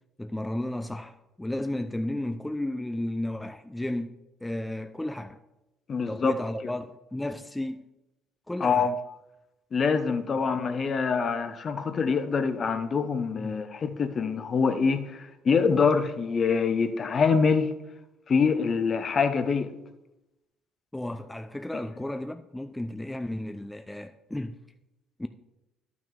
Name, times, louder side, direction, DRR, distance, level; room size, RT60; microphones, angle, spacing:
voice 1, 0.2-4.1 4.4-5.4 6.1-7.9 8.5-8.9 13.4-13.5 20.9-24.6 25.2-25.3, left 1 dB, 10° left, 0.5 m, -33 dB
voice 2, 5.9-6.3 6.6-6.7 8.6-9.0 9.7-17.7 18.3-19.7, left 5 dB, 45° left, 0.9 m, -25 dB
12.0 x 6.1 x 3.7 m
hypercardioid pair, 60°, 0 cm